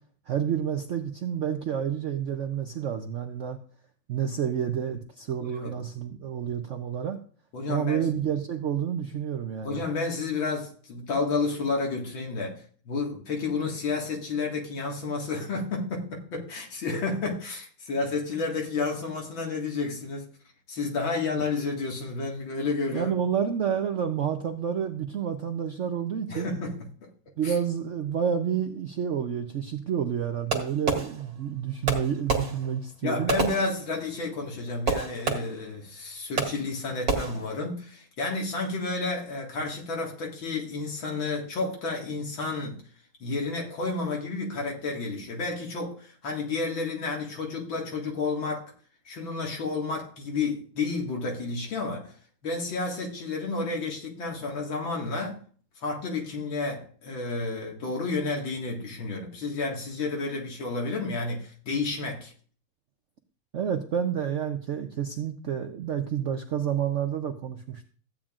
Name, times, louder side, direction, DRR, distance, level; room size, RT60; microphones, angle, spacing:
voice 1, 0.3-3.6 4.1-7.2 7.7-9.8 22.9-26.5 27.4-33.3 63.5-67.8, right 8 dB, 75° right, 0.6 m, -29 dB
voice 2, 5.4-5.7 7.5-8.1 9.6-20.3 20.7-23.1 26.3-26.8 27.0-27.1 27.4-27.5 33.0-42.8 43.2-48.7 49.1-52.1 52.4-55.4 55.8-62.3, left 3 dB, 90° left, 2.7 m, -31 dB
Fireworks, 30.5-31.5 31.8-34.3 34.9-35.8 36.4-36.8 37.1-37.6, right 4 dB, 50° right, 2.0 m, -30 dB
14.5 x 8.7 x 2.4 m
omnidirectional pair, 2.1 m